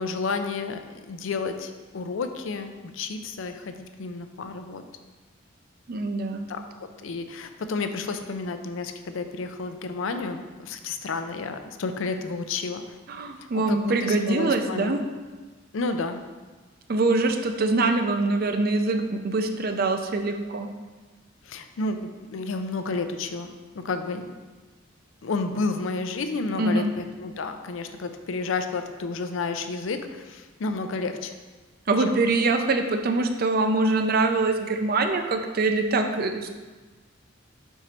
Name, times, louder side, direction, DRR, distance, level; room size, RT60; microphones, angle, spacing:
voice 1, 0.0-4.8 6.5-6.6 7.0-12.8 13.5-14.9 15.7-16.2 21.5-23.5 23.7-24.3 25.2-31.3 32.1-32.2, left 3 dB, 75° left, 8 dB, 0.5 m, -31 dB
voice 2, 5.9-6.5 13.1-15.0 16.9-20.7 26.5-26.9 31.9-36.5, right 3 dB, 50° right, 6 dB, 0.5 m, -24 dB
5.1 x 4.6 x 4.3 m, 1.3 s
head